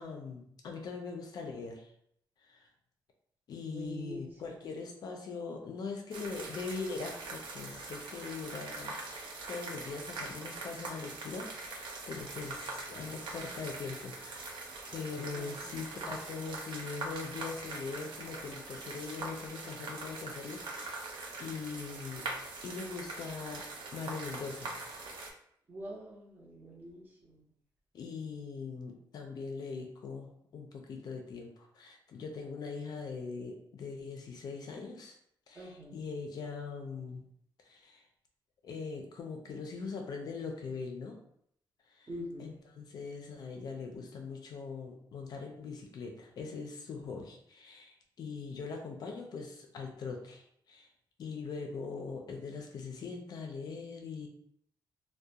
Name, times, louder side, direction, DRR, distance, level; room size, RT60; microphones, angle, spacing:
voice 1, 0.0-1.9 2.4-2.7 3.5-14.5 14.9-21.1 21.4-22.3 22.6-24.8 27.9-35.2 35.5-37.3 37.6-38.0 38.6-41.2 41.9-42.1 42.4-50.9 51.2-54.3, left 4 dB, 55° left, 2 dB, 0.4 m, -41 dB
voice 2, 3.7-4.5 15.3-15.6 25.7-27.4 35.5-36.0 42.1-42.5, equal, 25° right, -2 dB, 0.6 m, -45 dB
sound 1, 6.1-25.3, right 3 dB, 75° right, 0.5 m, -43 dB
2.3 x 2.1 x 2.7 m, 0.69 s
wide cardioid pair, 165°, 8 cm